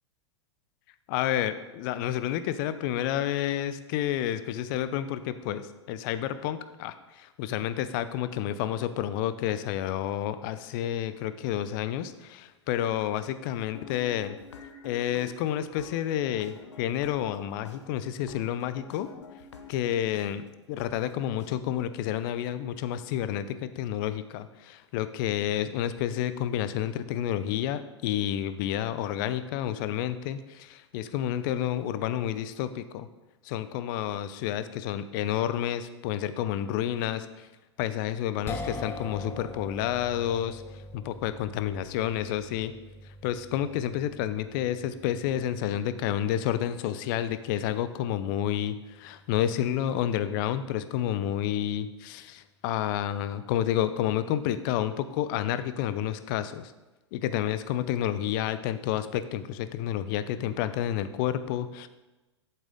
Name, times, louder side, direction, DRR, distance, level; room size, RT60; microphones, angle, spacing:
voice 1, 1.1-14.4 14.8-19.1 19.7-33.1 33.4-37.5 37.8-40.6 40.9-42.7 43.2-56.7 57.1-61.9, left 11 dB, 45° left, 12 dB, 0.6 m, -30 dB
sound 1, 13.6-20.3 20.8-20.9 21.4-21.5, left 5 dB, 70° left, 0.9 m, -48 dB
sound 2, 38.5-50.8, left 2 dB, 15° left, 0.8 m, -44 dB
8.2 x 7.5 x 3.7 m, 1.1 s
figure-of-eight pair, 100°, 16 cm